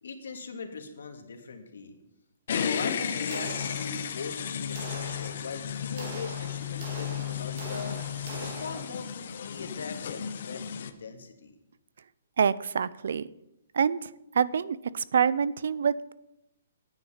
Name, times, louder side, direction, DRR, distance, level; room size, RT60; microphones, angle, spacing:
voice 1, 0.0-1.9 2.5-8.0 8.4-11.5, left 5 dB, 75° left, 4 dB, 2.0 m, -40 dB
sound 1, 2.5-10.9, left 8 dB, 40° left, 0.8 m, -34 dB
sound 2, 3.3-4.3 4.7-9.2, right 2 dB, 35° right, 2.4 m, -43 dB
voice 2, 12.4-13.3 13.7-14.1 14.3-16.1, right 7 dB, 60° right, 19 dB, 0.5 m, -26 dB
10.0 x 9.4 x 5.7 m, 0.87 s
hypercardioid pair, 180°, 0 cm